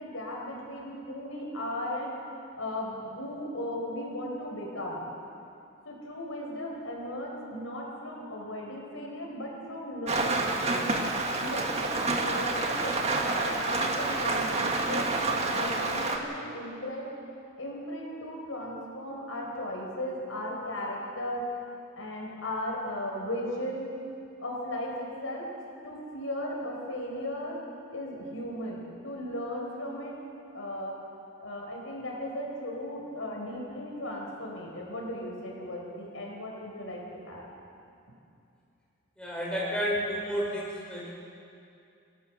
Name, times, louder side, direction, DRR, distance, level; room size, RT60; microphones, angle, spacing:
voice 1, 0.0-2.2 2.5-5.0 5.9-10.9 11.4-13.0 13.3-17.1 17.6-21.5 22.0-23.9 24.4-25.5 25.8-27.6 27.9-30.2 30.5-31.0 31.4-37.4, left 1 dB, 85° left, -1 dB, 5.2 m, -36 dB
Rain, 10.1-16.2, right 3 dB, 30° right, 1.8 m, -28 dB
voice 2, 39.2-41.1, equal, 5° left, -6 dB, 5.5 m, -31 dB
27.5 x 17.5 x 6.5 m, 2.6 s
head